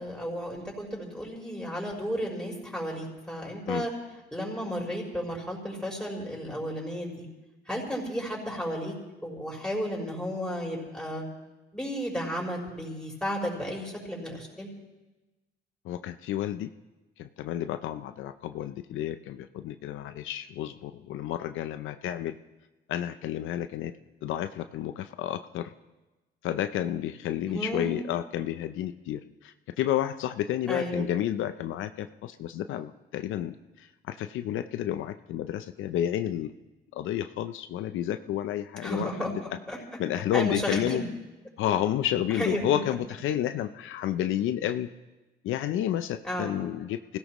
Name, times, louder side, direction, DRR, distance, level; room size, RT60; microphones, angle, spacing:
voice 1, 0.0-3.9 4.3-7.3 7.7-8.9 9.2-11.3 11.7-14.7 27.5-27.9 30.7-31.1 38.8-39.3 39.7-39.8 40.1-41.1 42.3-42.8 46.2-46.5, equal, 5° left, -3 dB, 5.6 m, -33 dB
voice 2, 15.9-16.7 17.2-22.4 22.9-23.9 24.2-25.7 26.4-33.5 34.1-36.5 36.9-39.3 40.0-41.0 41.6-44.9 45.4-47.0, left 11 dB, 85° left, 10 dB, 0.6 m, -30 dB
24.0 x 16.5 x 3.1 m, 1.1 s
cardioid pair, 90°, 20 cm